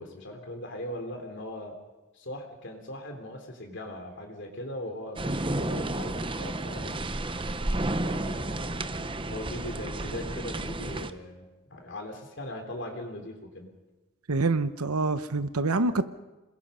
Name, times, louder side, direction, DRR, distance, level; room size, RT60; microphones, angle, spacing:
voice 1, 0.0-1.8 2.1-7.0 8.0-13.7, left 1 dB, 55° left, 3 dB, 3.4 m, -40 dB
sound 1, 5.2-11.1, right 1 dB, 25° right, 0.8 m, -31 dB
voice 2, 14.3-16.1, right 3 dB, 90° right, 11 dB, 1.0 m, -26 dB
28.0 x 21.0 x 5.6 m, 1.1 s
head